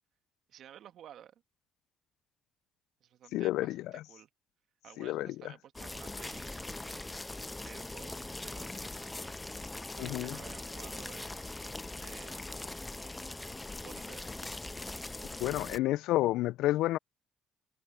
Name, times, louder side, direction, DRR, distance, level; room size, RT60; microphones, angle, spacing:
voice 1, 0.5-1.4 3.0-4.3 4.8-8.2 8.4-9.3 10.0-12.5 13.8-14.6, right 10 dB, 70° right, 1.7 m, -54 dB
voice 2, 3.3-4.0 5.0-5.3 10.0-10.4 15.4-17.0, left 16 dB, 85° left, 0.3 m, -30 dB
sound 1, 5.8-15.8, left 2 dB, 15° left, 0.9 m, -41 dB
supercardioid pair, 70°, 0 cm